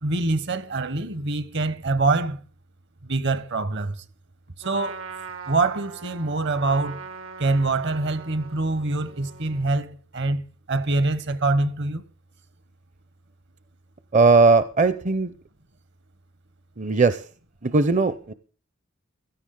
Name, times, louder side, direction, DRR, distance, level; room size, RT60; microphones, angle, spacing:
voice 1, 0.0-2.4 3.0-4.0 4.6-5.0 5.5-7.0 7.4-12.0, right 2 dB, 60° right, 1.2 m, -25 dB
Trumpet, 4.6-9.8, right 5 dB, 85° right, 1.9 m, -41 dB
voice 2, 14.1-15.3 16.8-17.2 17.6-18.3, right 4 dB, 35° right, 0.6 m, -18 dB
16.5 x 13.5 x 3.8 m
head